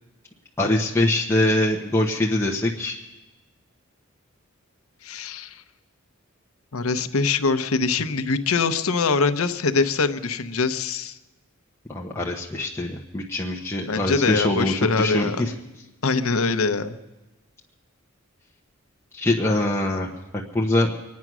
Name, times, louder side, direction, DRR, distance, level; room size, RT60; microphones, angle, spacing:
voice 1, 0.6-3.0 11.9-15.5 19.1-20.1 20.5-20.9, left 1 dB, 10° left, -2 dB, 1.0 m, -23 dB
voice 2, 5.0-5.6 6.7-11.2 13.9-15.4 16.0-17.0, left 4 dB, 80° left, 10 dB, 0.8 m, -23 dB
25.0 x 9.5 x 6.1 m, 1.1 s
head